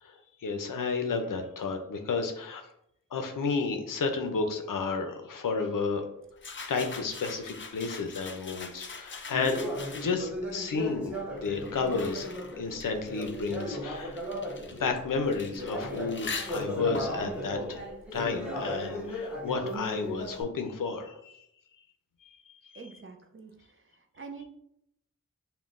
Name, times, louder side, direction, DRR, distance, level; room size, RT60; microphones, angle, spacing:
voice 1, 0.0-2.6 3.1-6.0 6.7-9.6 10.0-14.2 14.7-17.8 18.1-21.4 22.2-22.7, left 4 dB, 85° left, 5 dB, 0.6 m, -32 dB
sound 1, 6.4-10.4 11.2-18.6, left 4 dB, 40° left, 0.4 m, -43 dB
Conversation, 9.3-15.0 15.5-20.4, left 1 dB, 5° right, 0.9 m, -36 dB
voice 2, 22.7-24.5, right 4 dB, 40° right, 5 dB, 0.5 m, -46 dB
5.6 x 2.2 x 2.5 m, 0.77 s
wide cardioid pair, 60°, 32 cm